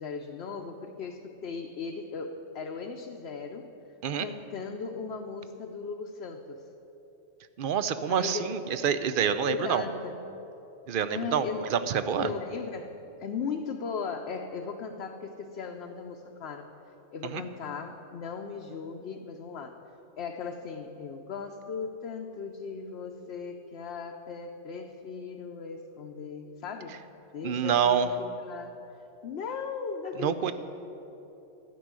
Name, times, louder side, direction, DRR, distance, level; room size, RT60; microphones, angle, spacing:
voice 1, 0.0-3.7 4.2-6.6 8.1-8.6 9.5-10.2 11.1-11.7 12.2-12.9 13.2-16.7 17.1-19.8 20.2-27.0 27.3-28.8 29.2-30.5, left 5 dB, 60° left, 2 dB, 0.9 m, -37 dB
voice 2, 7.6-9.8 10.9-12.3 17.2-17.4 27.4-28.1 30.2-30.5, right 7 dB, 60° right, 12 dB, 0.6 m, -27 dB
12.5 x 6.2 x 9.4 m, 3.0 s
omnidirectional pair, 1.3 m